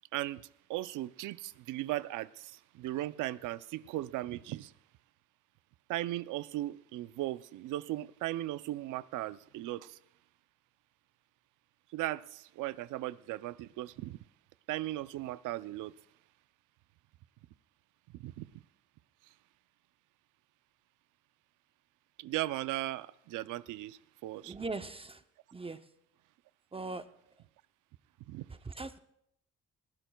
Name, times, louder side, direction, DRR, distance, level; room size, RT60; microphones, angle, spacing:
voice 1, 0.1-4.7 5.9-10.0 11.9-14.2 14.7-15.9 18.1-18.5 22.2-24.5 28.3-28.5, right 16 dB, 85° right, 0.5 m, -37 dB
voice 2, 24.4-25.2 25.5-25.9 26.7-27.1 28.5-29.0, right 3 dB, 20° right, 0.6 m, -40 dB
21.0 x 15.5 x 2.3 m
cardioid pair, 90°, 30 cm